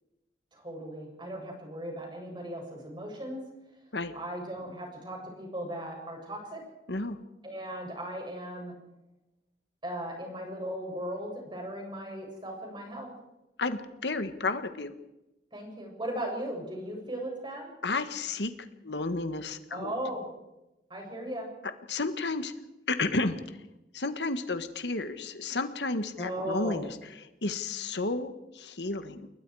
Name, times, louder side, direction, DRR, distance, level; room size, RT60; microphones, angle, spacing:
voice 1, 0.5-3.4 4.1-6.6 7.4-8.7 9.8-13.1 15.5-17.7 19.7-20.3 20.9-21.5 26.2-26.8, right 1 dB, 25° right, 1 dB, 7.6 m, -37 dB
voice 2, 13.6-14.9 17.8-18.5 18.8-19.9 21.9-22.5 22.9-23.3 23.9-29.3, left 3 dB, 80° left, 9 dB, 1.6 m, -32 dB
29.0 x 21.5 x 4.9 m, 0.96 s
head